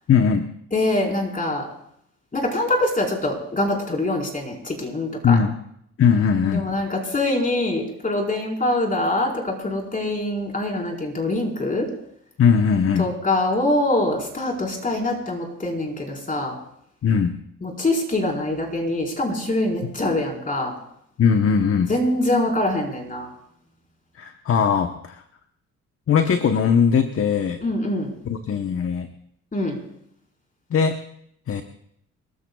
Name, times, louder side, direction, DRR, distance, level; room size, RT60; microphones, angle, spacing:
voice 1, 0.1-0.5 5.2-5.6 6.0-6.7 12.4-13.1 17.0-17.4 21.2-21.9 24.2-25.2 26.1-27.6 28.2-29.1 30.7-31.0 31.5-31.6, left 6 dB, 45° left, 7 dB, 1.1 m, -19 dB
voice 2, 0.7-1.7 2.3-5.4 6.5-11.9 13.0-16.6 17.6-20.7 21.9-23.3 27.6-28.1 29.5-29.8, left 1 dB, 25° left, 0 dB, 4.7 m, -24 dB
29.0 x 14.0 x 2.4 m, 0.71 s
cardioid pair, 90°, 30 cm